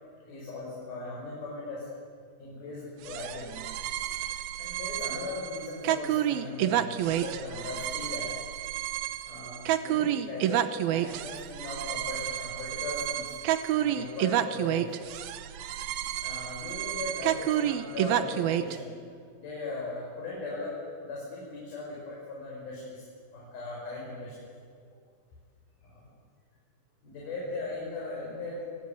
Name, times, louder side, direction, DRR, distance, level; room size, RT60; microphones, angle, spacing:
voice 1, 0.3-1.9 2.4-3.6 4.6-8.3 9.3-13.4 13.7-15.2 15.9-19.0 19.4-20.8 21.0-23.1 23.3-24.5 25.8-26.0 27.0-28.7, left 3 dB, 85° left, -4 dB, 7.4 m, -38 dB
sound 1, 3.0-18.8, right 12 dB, 85° right, 2.9 m, -30 dB
26.5 x 19.0 x 9.3 m, 2.1 s
omnidirectional pair, 4.2 m